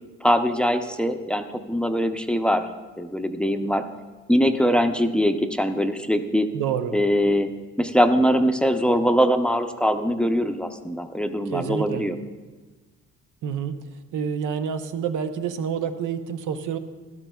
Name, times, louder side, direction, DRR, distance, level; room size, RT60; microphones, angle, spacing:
voice 1, 0.2-2.7 3.0-3.8 4.3-6.5 6.9-7.5 7.8-12.2, equal, 5° left, 7 dB, 0.5 m, -22 dB
voice 2, 6.5-7.0 11.5-12.1 13.4-13.8 14.1-16.8, right 7 dB, 85° right, 9 dB, 0.7 m, -28 dB
13.0 x 12.0 x 2.3 m, 1.3 s
cardioid pair, 90°, 30 cm